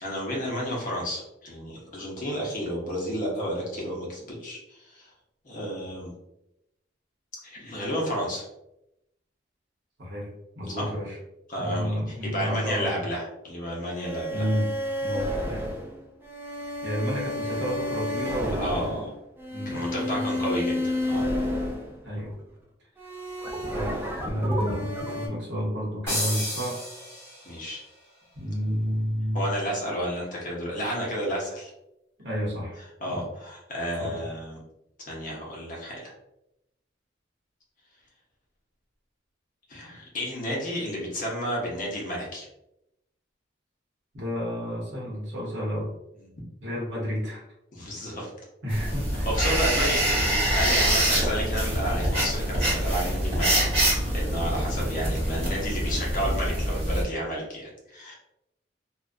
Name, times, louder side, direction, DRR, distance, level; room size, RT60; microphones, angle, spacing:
voice 1, 0.0-5.1 5.4-6.1 7.4-8.5 10.7-10.9 11.5-14.4 18.6-19.1 19.7-21.2 27.4-27.8 29.3-31.7 33.0-34.6 35.0-36.1 39.7-42.5 47.7-48.3 49.3-58.1, equal, 45° left, -3 dB, 0.6 m, -31 dB
voice 2, 10.5-11.2 11.6-12.9 14.3-15.7 16.8-19.0 19.5-20.3 22.0-22.4 23.5-26.8 28.3-29.5 32.2-32.8 33.1-33.3 34.0-34.2 44.1-45.9 46.6-47.4 48.6-49.3, equal, 65° right, -4 dB, 0.8 m, -31 dB
sound 1, 13.9-22.4 23.0-25.3, left 1 dB, 10° right, 0.3 m, -31 dB
sound 2, 26.1-27.7, left 1 dB, 15° left, 0.9 m, -32 dB
sound 3, 48.7-57.0, right 1 dB, 30° right, 0.9 m, -25 dB
2.4 x 2.1 x 2.4 m, 0.86 s
head